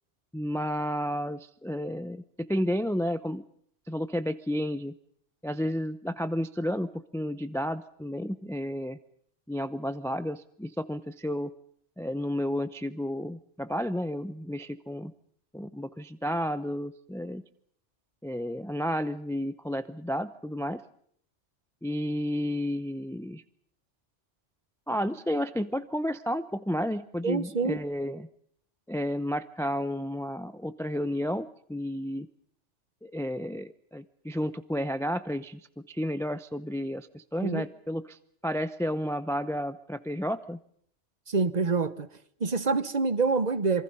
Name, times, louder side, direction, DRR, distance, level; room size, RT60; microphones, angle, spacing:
voice 1, 0.3-3.4 3.9-4.9 5.4-9.0 9.5-11.5 12.0-15.1 15.5-17.4 18.2-20.8 21.8-23.4 24.9-28.3 28.9-32.3 33.0-35.6 35.9-40.6, equal, 5° left, 0.6 m, -31 dB
voice 2, 27.2-27.8 37.4-37.6 41.3-42.1 42.4-43.8, right 4 dB, 35° right, 1.2 m, -26 dB
27.0 x 24.0 x 5.5 m
omnidirectional pair, 1.2 m